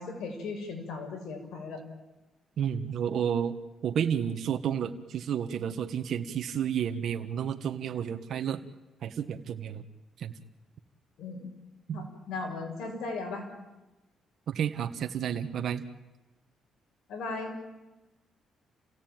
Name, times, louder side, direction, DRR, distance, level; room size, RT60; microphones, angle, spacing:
voice 1, 0.0-1.8 11.2-11.5 11.9-13.5 17.1-17.5, left 3 dB, 75° left, 4 dB, 6.1 m, -37 dB
voice 2, 2.6-3.5 3.8-8.6 9.0-9.8 10.2-10.3 11.9-12.1 14.5-15.8, right 8 dB, 65° right, 6 dB, 1.5 m, -31 dB
29.0 x 17.0 x 9.1 m, 1.1 s
cardioid pair, 90°, 0 cm